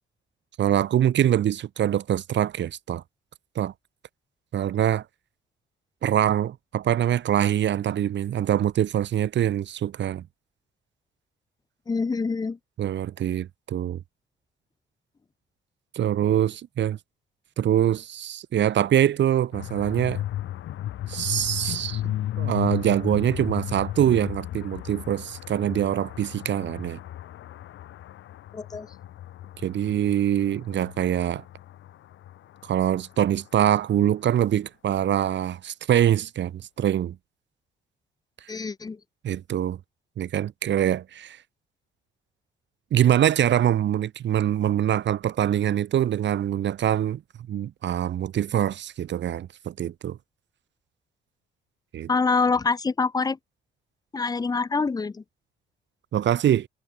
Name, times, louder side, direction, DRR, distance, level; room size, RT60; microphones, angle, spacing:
voice 1, 0.6-3.0 3.5-3.7 4.5-5.0 6.0-10.2 12.8-14.0 15.9-17.0 17.6-20.2 21.1-27.0 29.6-31.4 32.6-37.1 39.2-39.8 40.2-41.4 42.9-47.2 47.5-50.2 51.9-52.1 56.1-56.7, right 10 dB, 65° right, 1.7 m, -24 dB
voice 2, 11.9-12.6 28.5-28.9 38.5-39.0 52.1-53.4 54.1-55.2, left 4 dB, 20° left, 0.5 m, -25 dB
sound 1, 19.5-33.4, left 13 dB, 80° left, 3.3 m, -35 dB
cardioid pair, 90°, 20 cm